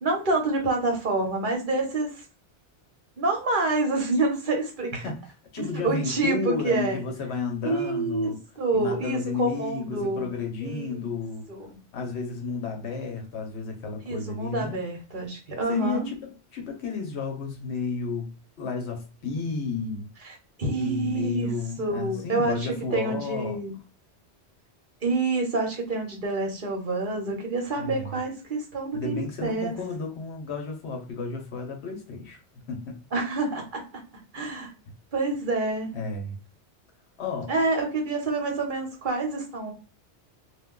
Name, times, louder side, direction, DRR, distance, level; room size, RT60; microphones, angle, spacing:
voice 1, 0.0-2.2 3.2-5.1 5.6-7.0 7.6-8.3 8.6-10.3 10.6-11.1 11.5-11.8 14.0-16.1 20.6-21.5 21.8-23.7 25.0-29.7 33.1-33.8 34.3-34.7 35.1-35.9 37.5-39.7, right 3 dB, 50° right, 1.0 m, -27 dB
voice 2, 5.5-8.4 8.7-11.5 11.9-14.8 15.7-18.3 18.6-20.0 20.7-23.6 27.8-28.1 28.9-33.0 35.9-36.3 37.2-37.5, left 5 dB, 75° left, 1.1 m, -32 dB
2.4 x 2.2 x 3.7 m
omnidirectional pair, 1.2 m